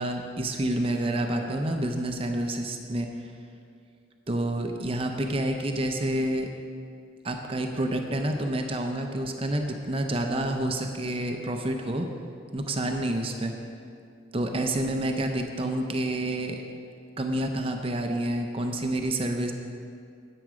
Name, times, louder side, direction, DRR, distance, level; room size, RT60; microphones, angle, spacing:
voice 1, 0.0-3.1 4.3-6.5 7.2-12.1 12.5-13.5 14.3-16.6 17.2-19.5, right 1 dB, 30° right, 4 dB, 0.6 m, -28 dB
9.4 x 8.7 x 5.0 m, 2.3 s
head